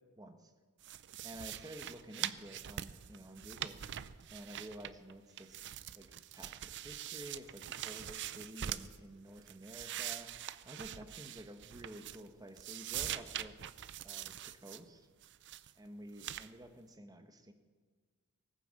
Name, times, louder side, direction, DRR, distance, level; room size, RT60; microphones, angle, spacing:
voice 1, 0.2-0.5 1.2-3.8 4.3-5.6 5.9-10.3 10.6-13.6 14.0-15.1 15.8-17.5, right 1 dB, 15° right, 7 dB, 1.3 m, -51 dB
sound 1, 0.8-5.1 5.4-9.0 9.4-12.3 12.6-14.8 15.2-15.7 16.2-16.5, right 11 dB, 55° right, 0.5 m, -43 dB
17.5 x 9.7 x 7.6 m, 1.5 s
head